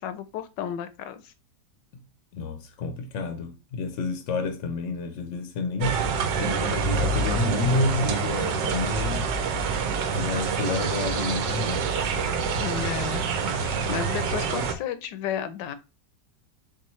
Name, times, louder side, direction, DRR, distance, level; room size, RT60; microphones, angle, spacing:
voice 1, 0.0-1.3 12.6-13.2 13.5-15.7, left 9 dB, 85° left, 1.3 m, -33 dB
voice 2, 2.3-6.0 6.4-9.3 10.1-11.9, left 3 dB, 65° left, 0.7 m, -29 dB
sound 1, 5.8-14.8, right 5 dB, 90° right, 1.4 m, -26 dB
4.6 x 3.6 x 3.1 m
omnidirectional pair, 1.9 m